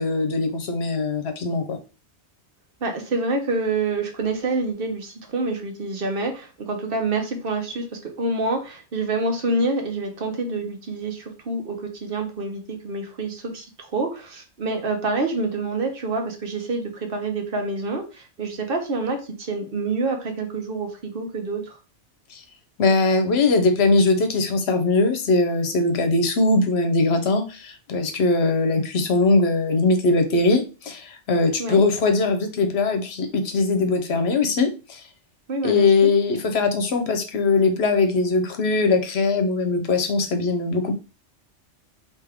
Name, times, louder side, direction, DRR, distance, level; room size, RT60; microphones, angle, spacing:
voice 1, 0.0-1.8 22.3-22.4 22.8-35.0 35.6-40.9, left 3 dB, 65° left, 6 dB, 0.9 m, -21 dB
voice 2, 2.8-21.8 31.6-31.8 35.5-36.1, right 3 dB, 55° right, 4 dB, 1.0 m, -27 dB
3.5 x 2.9 x 3.5 m, 0.32 s
omnidirectional pair, 1.2 m